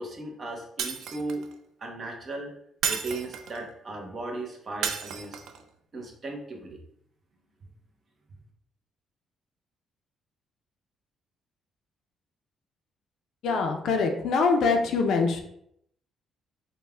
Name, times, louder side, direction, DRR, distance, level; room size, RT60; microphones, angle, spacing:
voice 1, 0.0-1.4 1.8-2.5 2.9-5.4 5.9-6.8, right 2 dB, 30° right, 1 dB, 0.8 m, -36 dB
Shatter, 0.8-1.5 2.8-3.6 4.8-5.6, right 7 dB, 75° right, 0.4 m, -32 dB
voice 2, 13.4-15.4, left 4 dB, 65° left, 4 dB, 0.6 m, -24 dB
5.4 x 2.2 x 3.4 m, 0.72 s
cardioid pair, 155°, 0 cm